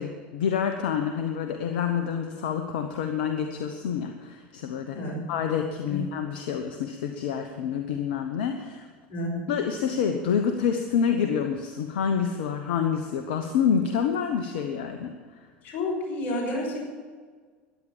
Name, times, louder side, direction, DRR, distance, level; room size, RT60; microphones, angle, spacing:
voice 1, 0.0-5.0 5.3-8.9 9.5-15.1, left 7 dB, 65° left, 6 dB, 1.0 m, -27 dB
voice 2, 9.1-9.4 15.6-16.8, left 1 dB, 40° left, -2 dB, 5.9 m, -30 dB
14.0 x 10.0 x 7.4 m, 1.5 s
figure-of-eight pair, 75°, 6 cm